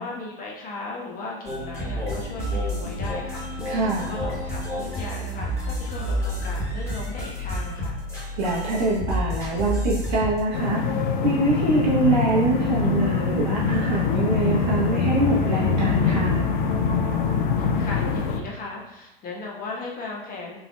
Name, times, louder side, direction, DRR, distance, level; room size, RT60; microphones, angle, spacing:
voice 1, 0.0-8.0 17.8-20.6, left 3 dB, 30° left, -2 dB, 1.0 m, -37 dB
sound 1, 1.4-10.4, equal, 10° left, 1.5 m, -29 dB
voice 2, 3.6-4.1 8.1-11.0 11.2-16.6, right 2 dB, 45° right, -5 dB, 1.0 m, -24 dB
sound 2, 10.5-18.4, left 5 dB, 55° left, 0.5 m, -23 dB
5.7 x 2.7 x 2.2 m, 0.96 s
figure-of-eight pair, 90°, 30 cm